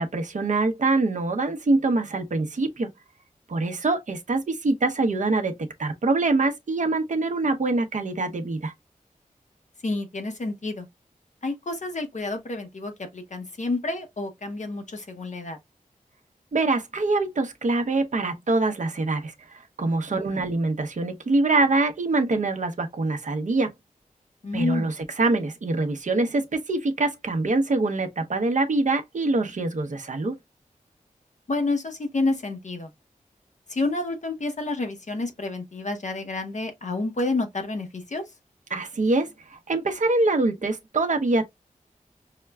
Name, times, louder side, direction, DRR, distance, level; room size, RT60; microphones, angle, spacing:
voice 1, 0.0-2.9 3.5-8.7 16.5-23.7 24.5-30.4 38.7-41.5, right 2 dB, 60° right, 0.7 m, -24 dB
voice 2, 9.8-10.8 11.4-15.6 20.3-20.4 24.4-24.9 31.5-32.9 33.7-38.2, left 2 dB, 60° left, 0.9 m, -29 dB
5.6 x 2.2 x 2.2 m
wide cardioid pair, 65°, 14 cm